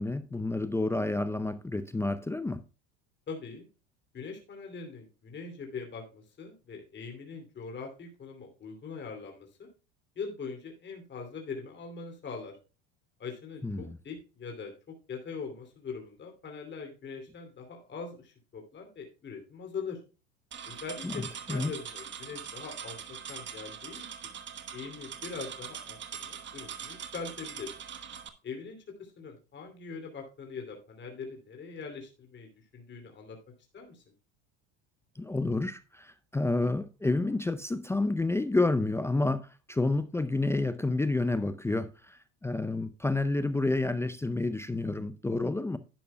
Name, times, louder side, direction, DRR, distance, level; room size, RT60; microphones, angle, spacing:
voice 1, 0.0-2.6 13.6-14.0 21.0-21.2 21.5-21.7 35.2-45.8, left 2 dB, 5° left, 0.5 m, -29 dB
voice 2, 3.3-3.6 4.1-9.7 10.2-12.5 13.2-14.7 15.1-20.0 20.7-24.2 24.7-27.7 28.4-33.4 33.7-34.0, left 5 dB, 30° left, 2.8 m, -42 dB
sound 1, 20.5-28.3, right 8 dB, 30° right, 1.2 m, -42 dB
11.5 x 10.0 x 2.2 m
supercardioid pair, 110°, 36 cm